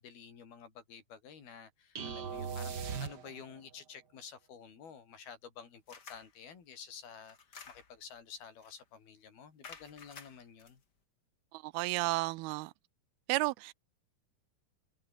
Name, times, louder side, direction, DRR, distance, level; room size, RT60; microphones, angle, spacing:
voice 1, 0.0-10.8, left 7 dB, 75° left, 6.0 m, -51 dB
sound 1, 2.0-3.7, right 6 dB, 40° right, 1.6 m, -39 dB
Ice Cubes, 5.9-6.3 7.2-8.1 8.6-8.8 9.6-10.7, left 5 dB, 30° left, 2.3 m, -52 dB
voice 2, 11.5-12.7 13.3-13.7, right 22 dB, 90° right, 2.5 m, -32 dB
omnidirectional pair, 4.4 m